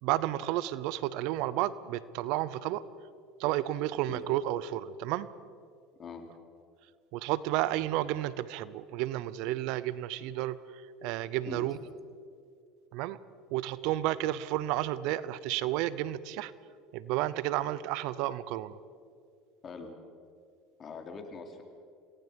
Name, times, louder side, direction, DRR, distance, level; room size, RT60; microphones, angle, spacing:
voice 1, 0.0-2.8 3.4-5.3 7.1-11.8 12.9-13.2 13.5-16.5 16.9-18.8, right 14 dB, 70° right, 18 dB, 0.7 m, -32 dB
voice 2, 20.8-21.6, left 5 dB, 40° left, 4 dB, 3.5 m, -43 dB
28.0 x 18.0 x 5.3 m, 2.3 s
supercardioid pair, 90°, 0 cm